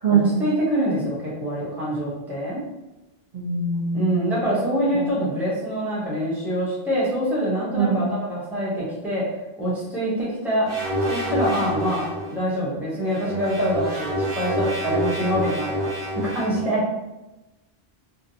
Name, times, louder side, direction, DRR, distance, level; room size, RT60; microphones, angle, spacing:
voice 1, 0.1-2.6 3.9-9.2 9.6-10.7 11.1-16.8, equal, ahead, -7 dB, 0.6 m, -25 dB
voice 2, 3.3-4.2 4.9-5.0 7.7-8.0, right 5 dB, 45° right, -8 dB, 0.6 m, -22 dB
sound 1, 10.7-12.3 13.0-16.7, equal, 80° right, 1.2 m, -27 dB
2.5 x 2.1 x 2.7 m, 1.0 s
omnidirectional pair, 1.1 m